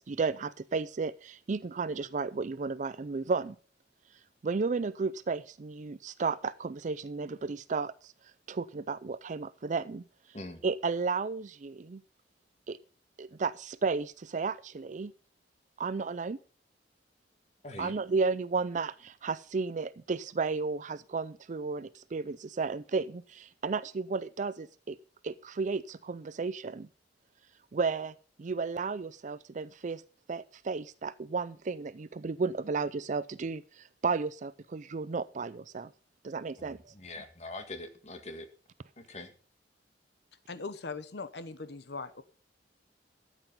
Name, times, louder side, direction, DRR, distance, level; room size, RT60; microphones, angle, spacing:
voice 1, 0.0-3.6 4.4-8.1 8.5-10.0 10.6-12.0 12.7-12.8 13.2-15.1 15.8-16.4 17.8-25.0 25.2-26.9 27.7-30.0 30.3-35.9 36.2-36.9, right 4 dB, 45° right, 16 dB, 0.4 m, -33 dB
voice 2, 17.6-17.9 36.6-38.5 39.0-39.3, left 2 dB, 40° left, 7 dB, 1.8 m, -43 dB
voice 3, 40.5-42.2, left 4 dB, 65° left, 13 dB, 0.9 m, -40 dB
13.0 x 8.1 x 5.3 m, 0.40 s
head